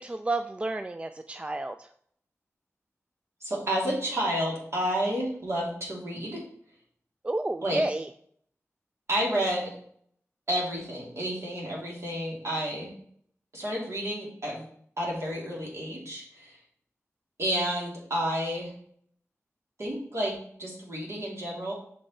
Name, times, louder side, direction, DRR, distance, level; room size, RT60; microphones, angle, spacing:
voice 1, 0.0-1.8 7.2-8.1, right 2 dB, 25° right, 9 dB, 0.3 m, -30 dB
voice 2, 3.4-6.4 7.6-7.8 9.1-9.7 10.5-12.9 13.5-14.6 15.0-16.6 17.4-18.7 19.8-20.3 20.6-21.7, equal, 60° right, -3 dB, 2.7 m, -30 dB
6.4 x 5.5 x 4.2 m, 0.62 s
wide cardioid pair, 85°, 5 cm